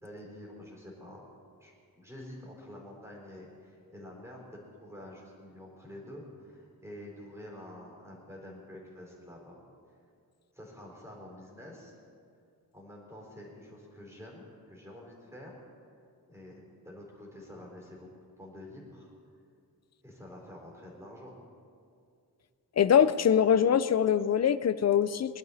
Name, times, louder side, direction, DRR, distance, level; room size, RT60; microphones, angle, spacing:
voice 1, 0.0-1.3 1.6-4.4 4.8-9.6 10.5-12.0 12.7-15.6 16.3-18.1 18.4-19.1 20.0-21.3, left 1 dB, 10° right, -3 dB, 3.7 m, -48 dB
voice 2, 22.8-25.4, left 8 dB, 45° left, 15 dB, 0.5 m, -23 dB
22.0 x 12.0 x 4.1 m, 2.5 s
wide cardioid pair, 170°, 36 cm